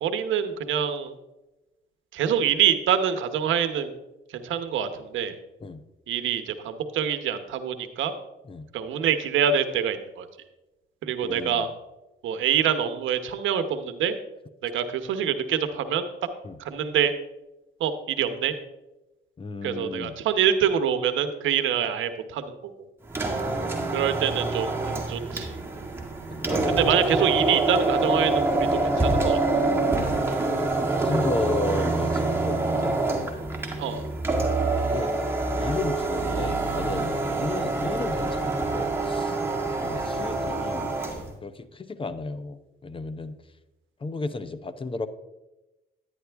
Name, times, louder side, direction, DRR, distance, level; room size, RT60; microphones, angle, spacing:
voice 1, 0.0-1.1 2.1-3.9 4.3-5.4 6.1-8.1 8.7-10.3 11.0-11.7 12.2-14.2 14.6-16.0 16.6-17.1 17.8-18.5 19.6-22.5 23.9-25.5 26.7-29.4 33.8-34.1, right 8 dB, 80° right, 9 dB, 1.0 m, -25 dB
voice 2, 11.2-11.6 16.4-16.6 19.4-20.1 23.4-24.1 26.3-26.8 30.5-33.0 34.8-35.1 35.5-39.4 39.8-40.9 41.4-43.3 44.0-45.1, left 3 dB, 25° left, 13 dB, 0.7 m, -33 dB
sound 1, 23.0-41.3, right 2 dB, 10° right, 1.9 m, -26 dB
10.5 x 9.8 x 3.4 m, 1.0 s
cardioid pair, 90°, 20 cm